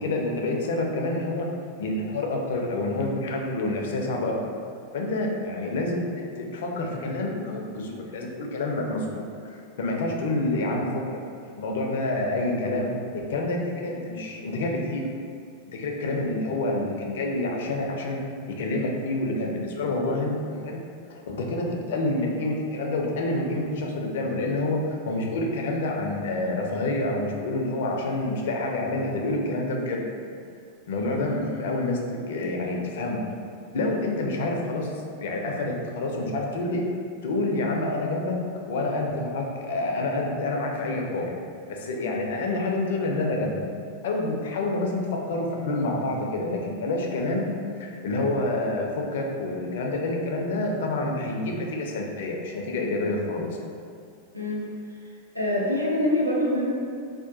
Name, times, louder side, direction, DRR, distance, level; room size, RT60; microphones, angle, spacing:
voice 1, 0.0-1.5 1.8-4.4 4.9-6.1 6.3-11.2 11.6-15.1 15.7-18.2 18.5-20.8 21.1-30.0 30.9-33.2 33.7-36.9 37.2-41.3 41.7-43.6 44.0-47.5 47.8-53.7, left 2 dB, 55° left, 0 dB, 0.4 m, -28 dB
voice 2, 55.3-56.7, left 1 dB, 90° right, -3 dB, 0.3 m, -25 dB
2.7 x 2.1 x 2.5 m, 2.2 s
figure-of-eight pair, 90°, 0 cm